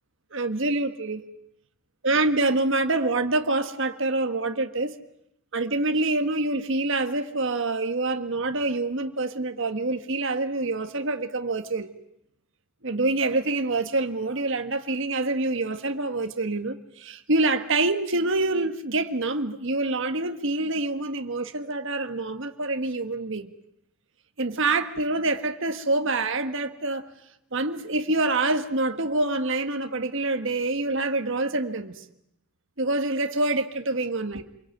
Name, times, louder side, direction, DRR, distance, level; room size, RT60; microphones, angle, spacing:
voice 1, 0.3-1.2 2.0-4.9 5.5-11.9 12.8-23.5 24.4-27.0 27.5-32.0 32.8-34.4, right 2 dB, 60° right, 1.5 m, -26 dB
27.0 x 22.5 x 9.2 m
head